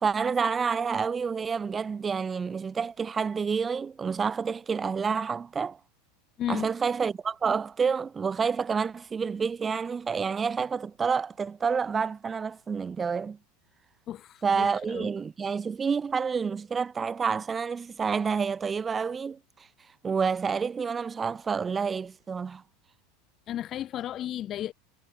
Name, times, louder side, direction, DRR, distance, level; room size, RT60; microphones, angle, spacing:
voice 1, 0.0-5.8 6.5-13.4 14.4-19.4 20.0-22.6, right 5 dB, 20° right, 0.5 m, -28 dB
voice 2, 14.1-15.1 23.5-24.7, left 12 dB, 35° left, 0.5 m, -34 dB
figure-of-eight pair, 80°, 0 cm